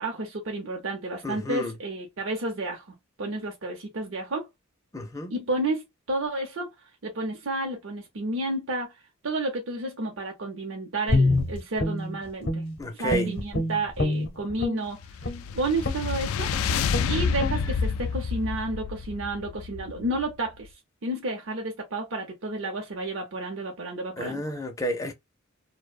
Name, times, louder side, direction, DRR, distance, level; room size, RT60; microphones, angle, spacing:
voice 1, 0.0-4.5 5.3-5.8 6.1-6.7 7.0-8.9 9.2-12.6 12.9-15.0 15.5-16.5 17.1-20.7 21.0-24.4, right 2 dB, 65° right, 0.6 m, -31 dB
voice 2, 1.2-1.7 4.9-5.3 12.8-13.3 24.2-25.1, left 1 dB, 15° left, 0.4 m, -30 dB
Guitar, 11.1-12.8 13.1-14.8 15.2-15.4 15.8-16.1 16.5-16.6 16.9-17.1 17.4-17.6, left 2 dB, 55° left, 0.7 m, -26 dB
sound 1, 14.9-20.4, left 6 dB, 85° left, 0.3 m, -29 dB
2.6 x 2.1 x 2.3 m
head